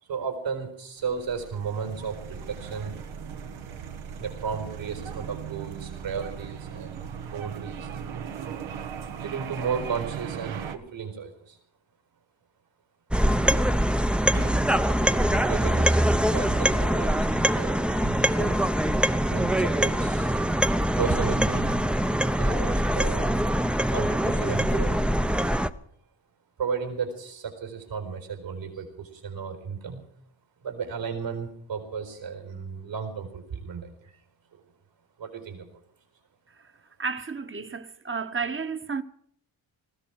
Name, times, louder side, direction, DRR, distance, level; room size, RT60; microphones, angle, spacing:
voice 1, 0.0-3.0 4.1-7.9 9.1-11.6 13.3-13.7 14.3-18.6 19.3-20.4 21.0-21.8 22.4-23.3 23.9-25.0 26.6-30.0 30.6-34.2 34.5-34.6 35.2-35.7, right 6 dB, 70° right, 4.7 m, -34 dB
sound 1, 1.0-10.8, right 7 dB, 85° right, 1.4 m, -38 dB
sound 2, 13.1-25.7, equal, ahead, 0.6 m, -23 dB
voice 2, 37.0-39.0, right 5 dB, 25° right, 1.2 m, -32 dB
20.0 x 15.0 x 4.7 m
cardioid pair, 80°, 46 cm